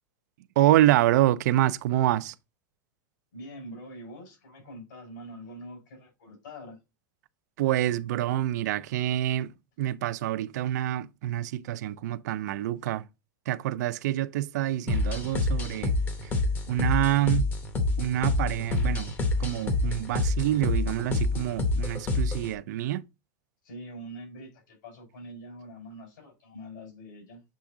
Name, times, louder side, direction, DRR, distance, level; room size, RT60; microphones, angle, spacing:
voice 1, 0.6-2.3 7.6-9.5 9.8-13.0 13.5-16.0 16.2-16.3 16.7-17.5 18.0-19.1 19.4-23.0, right 13 dB, 65° right, 0.4 m, -26 dB
voice 2, 3.3-6.8 23.6-27.4, equal, 85° left, 4.2 m, -44 dB
sound 1, 14.9-22.5, left 3 dB, 20° left, 0.7 m, -27 dB
7.5 x 3.5 x 3.7 m
supercardioid pair, 180°, 10 cm